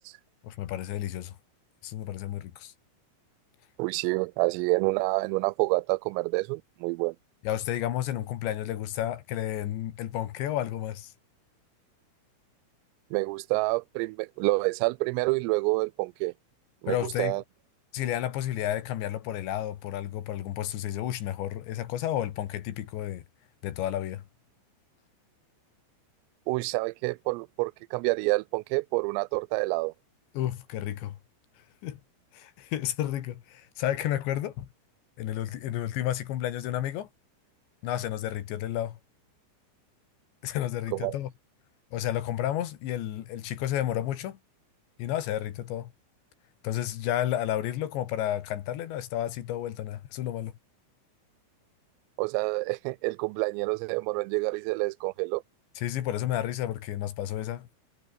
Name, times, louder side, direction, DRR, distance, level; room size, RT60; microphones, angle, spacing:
voice 1, 0.4-1.4 1.8-2.7 7.5-11.1 16.9-17.4 17.9-23.2 23.6-24.2 30.4-31.2 31.8-32.0 32.3-34.7 35.2-37.1 37.8-39.0 40.4-41.3 41.9-44.4 45.0-45.9 46.6-50.5 55.8-57.7, left 12 dB, 65° left, 3.6 m, -31 dB
voice 2, 3.8-7.2 13.1-16.3 16.8-17.4 26.5-29.9 40.9-41.1 52.2-55.4, right 25 dB, 85° right, 3.2 m, -28 dB
omnidirectional pair, 5.9 m